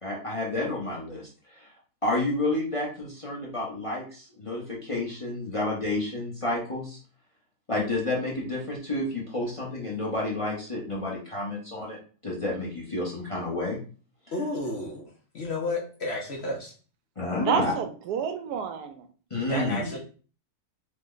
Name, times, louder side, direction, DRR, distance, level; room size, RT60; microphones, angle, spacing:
voice 1, 0.0-1.7 2.0-7.0 7.7-12.0 12.2-13.8 17.2-17.7 19.3-19.9, left 2 dB, 30° left, 0.7 m, -30 dB
voice 2, 14.3-15.1 15.3-16.7 19.5-20.0, left 2 dB, 55° left, 0.8 m, -31 dB
voice 3, 17.4-19.1 19.5-20.0, right 7 dB, 85° right, 1.1 m, -30 dB
3.1 x 2.1 x 3.7 m
omnidirectional pair, 1.7 m